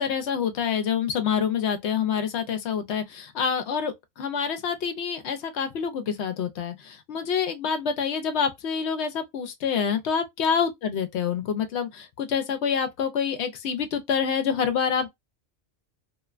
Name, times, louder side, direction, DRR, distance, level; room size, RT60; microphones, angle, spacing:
voice 1, 0.0-15.1, left 7 dB, 70° left, 0.8 m, -27 dB
2.7 x 2.1 x 2.3 m
omnidirectional pair, 1.2 m